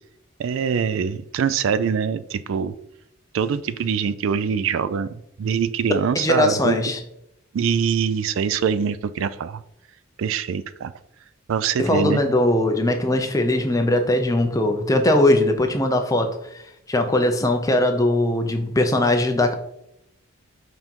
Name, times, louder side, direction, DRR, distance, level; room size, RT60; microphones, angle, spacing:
voice 1, 0.4-2.7 3.3-6.8 7.5-9.6 10.2-10.9 11.5-12.2, right 7 dB, 60° right, 15 dB, 0.3 m, -24 dB
voice 2, 6.1-7.0 11.8-16.6 16.9-19.5, left 1 dB, 15° left, 5 dB, 0.6 m, -20 dB
5.6 x 3.8 x 4.5 m, 0.79 s
head